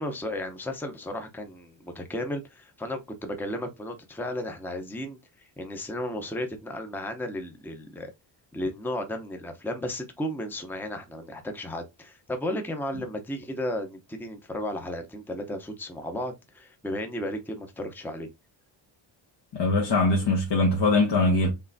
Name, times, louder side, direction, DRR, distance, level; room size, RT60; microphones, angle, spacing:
voice 1, 0.0-8.1 8.5-18.3, left 1 dB, 5° left, 0.8 m, -34 dB
voice 2, 19.5-21.5, left 2 dB, 60° left, 1.4 m, -22 dB
5.5 x 3.3 x 2.7 m
cardioid pair, 110°, 47 cm